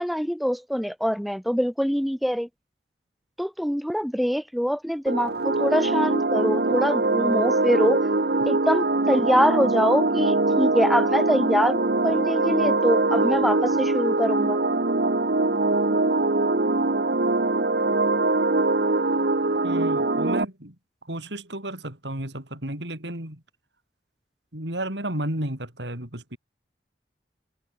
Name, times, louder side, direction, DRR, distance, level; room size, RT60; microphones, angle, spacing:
voice 1, 0.0-2.5 3.4-8.0 8.5-14.6, equal, ahead, 0.6 m, -24 dB
sound 1, 5.1-20.4, right 2 dB, 60° right, 1.1 m, -22 dB
voice 2, 19.6-20.7 21.1-23.4 24.5-26.4, right 1 dB, 80° right, 6.2 m, -32 dB
head